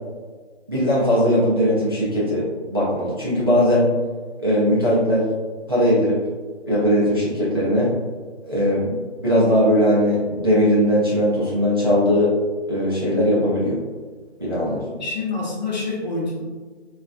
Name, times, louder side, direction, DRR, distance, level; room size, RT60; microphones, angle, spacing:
voice 1, 0.7-3.9 4.4-5.3 5.7-6.2 6.7-7.9 8.5-8.9 9.2-12.3 12.7-13.8 14.4-14.8, equal, 25° right, -8 dB, 0.4 m, -19 dB
voice 2, 14.5-16.4, left 3 dB, 40° left, -3 dB, 0.8 m, -28 dB
3.9 x 2.4 x 2.3 m, 1.4 s
figure-of-eight pair, 150°, 33 cm